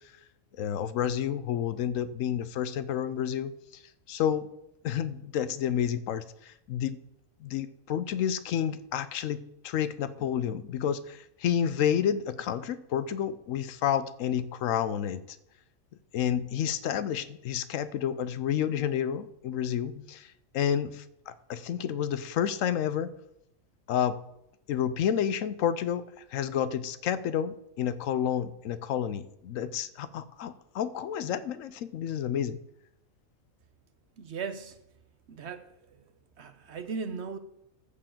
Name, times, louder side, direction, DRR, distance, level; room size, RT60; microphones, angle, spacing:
voice 1, 0.6-3.5 4.1-4.5 4.8-7.0 7.4-15.2 16.1-23.1 23.9-24.2 24.7-26.0 26.3-32.6, left 9 dB, 75° left, 1.0 m, -30 dB
voice 2, 34.2-34.8 35.3-35.7 36.4-37.4, right 5 dB, 60° right, 0.9 m, -37 dB
13.5 x 4.6 x 7.5 m
omnidirectional pair, 1.4 m